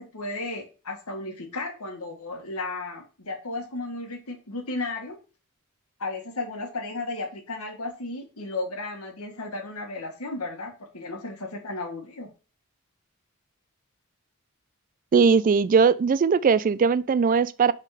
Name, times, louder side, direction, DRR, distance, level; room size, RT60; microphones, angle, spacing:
voice 1, 0.0-5.2 6.0-12.3, left 2 dB, 80° left, 1.7 m, -34 dB
voice 2, 15.1-17.7, right 5 dB, 40° right, 0.3 m, -20 dB
7.5 x 3.7 x 4.9 m
head